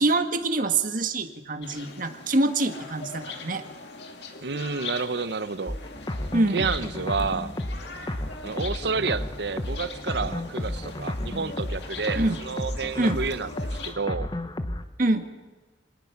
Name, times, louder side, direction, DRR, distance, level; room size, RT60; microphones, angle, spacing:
voice 1, 0.0-3.6 6.3-6.7 12.1-12.4 13.0-13.2 15.0-15.2, right 2 dB, 50° right, 7 dB, 1.6 m, -25 dB
sound 1, 1.6-13.9, left 4 dB, 65° left, 2.3 m, -42 dB
voice 2, 4.4-5.8 6.5-7.6 8.4-13.5 13.8-14.3, right 4 dB, 65° right, 14 dB, 0.9 m, -29 dB
sound 2, 5.7-14.8, left 1 dB, 25° left, 0.9 m, -32 dB
26.0 x 18.5 x 5.9 m, 1.3 s
head